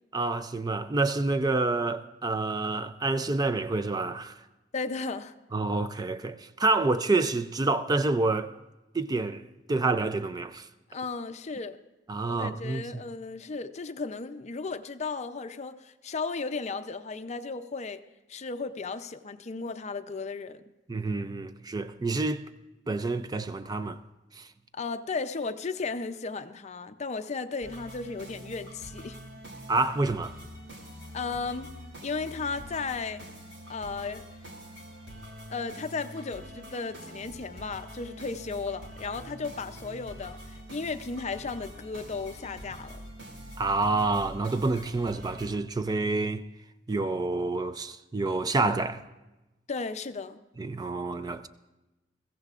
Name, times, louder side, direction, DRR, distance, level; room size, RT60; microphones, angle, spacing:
voice 1, 0.1-4.4 5.5-8.5 8.9-10.7 12.1-13.0 20.9-22.4 22.9-24.0 24.3-24.5 29.7-30.3 43.6-46.4 46.9-49.0 50.6-51.5, right 3 dB, 20° right, 0.4 m, -28 dB
voice 2, 4.7-5.3 10.9-11.8 12.3-18.0 18.3-20.6 24.7-29.2 31.1-31.7 32.0-33.2 33.7-34.2 35.5-43.0 49.7-50.4, left 4 dB, 40° left, 0.5 m, -35 dB
sound 1, 27.6-45.5, equal, 80° right, 2.8 m, -45 dB
21.5 x 15.5 x 2.4 m
head